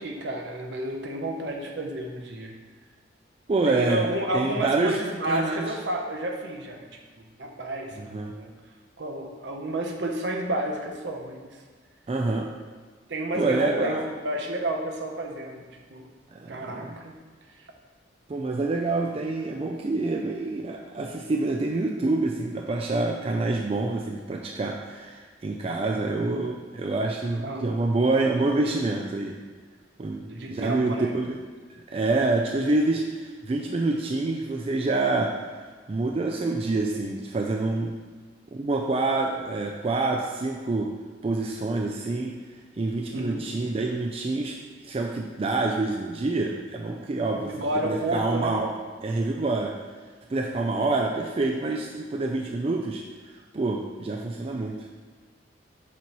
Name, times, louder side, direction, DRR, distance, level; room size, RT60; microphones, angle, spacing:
voice 1, 0.0-2.5 3.7-8.5 9.0-11.6 13.1-16.1 16.5-17.1 27.4-27.6 30.2-31.2 43.1-43.5 47.3-48.7, right 1 dB, 65° right, 2 dB, 0.8 m, -31 dB
voice 2, 3.5-4.0 4.3-5.0 5.3-5.7 8.0-8.3 12.1-12.5 13.4-14.1 16.3-17.0 18.3-29.4 30.0-31.4 31.9-35.3 35.9-37.9 38.5-40.9 41.2-42.4 42.8-44.6 44.8-47.5 47.8-48.7 49.0-49.7 50.3-53.0 53.3-54.8, right 2 dB, 30° right, 1 dB, 0.3 m, -27 dB
7.3 x 3.0 x 5.3 m, 1.4 s
head